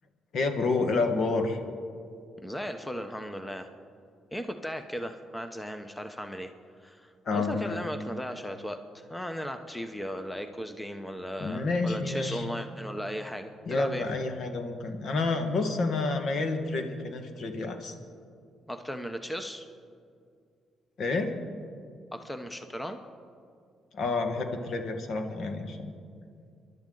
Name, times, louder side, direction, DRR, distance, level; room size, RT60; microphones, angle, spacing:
voice 1, 0.3-1.6 7.2-7.8 11.4-12.5 13.6-17.9 21.0-21.3 23.9-25.9, left 3 dB, 60° left, 5 dB, 1.7 m, -29 dB
voice 2, 2.4-3.7 4.3-6.5 6.8-14.1 18.7-19.7 22.1-23.0, equal, 10° left, 7 dB, 0.9 m, -36 dB
24.0 x 12.0 x 3.9 m, 2.3 s
cardioid pair, 90°, 0 cm